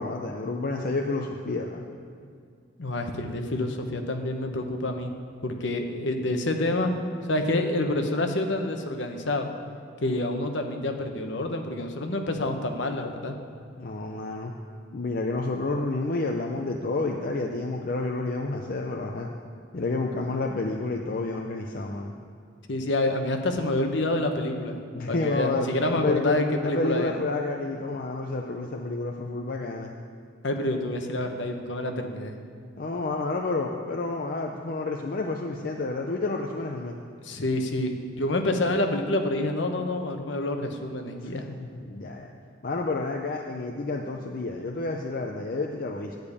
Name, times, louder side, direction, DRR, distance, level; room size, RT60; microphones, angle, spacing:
voice 1, 0.0-1.9 13.8-14.5 14.9-19.3 19.7-22.1 24.9-25.7 25.9-26.4 26.6-29.9 32.8-36.9 41.2-42.3 42.6-46.2, left 3 dB, 45° left, 1 dB, 0.5 m, -30 dB
voice 2, 2.8-5.1 5.4-6.9 7.3-9.5 10.0-13.4 22.7-24.8 25.1-27.1 30.4-32.4 37.2-37.9 38.2-41.5, left 1 dB, 60° left, 5 dB, 0.9 m, -27 dB
10.5 x 5.2 x 8.3 m, 2.3 s
head